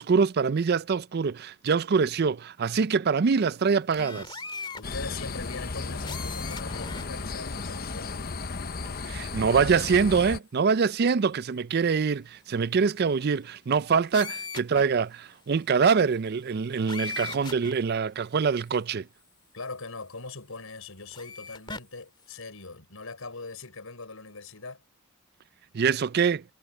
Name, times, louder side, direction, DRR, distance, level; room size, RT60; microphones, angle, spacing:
voice 1, 0.0-4.4 9.1-19.1 25.7-26.4, right 5 dB, 50° right, 0.4 m, -24 dB
sound 1, 3.9-4.8 6.0-7.0 7.6-7.7 14.1-14.8 16.9-17.7 18.7-18.8 21.1-21.8, left 4 dB, 25° left, 2.4 m, -38 dB
voice 2, 4.8-8.3 19.5-24.8, left 3 dB, 90° left, 4.6 m, -41 dB
sound 2, 4.8-10.4, left 4 dB, 45° left, 0.9 m, -34 dB
head